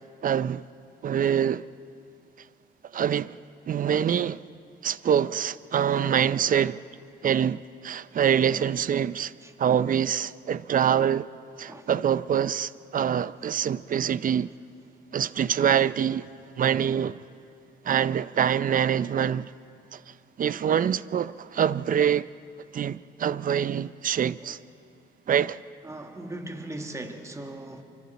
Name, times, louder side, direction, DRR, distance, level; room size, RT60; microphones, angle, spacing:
voice 1, 0.2-0.7 1.0-1.7 2.9-3.4 3.7-4.4 4.8-6.8 7.2-9.3 9.6-11.3 11.6-14.5 15.1-16.3 16.6-17.2 17.8-19.5 19.9-22.3 22.7-24.6 25.3-25.6, right 8 dB, 45° right, 0.5 m, -25 dB
voice 2, 25.8-27.8, right 1 dB, 15° right, 1.6 m, -39 dB
28.5 x 24.5 x 4.1 m
cardioid pair, 90°, 20 cm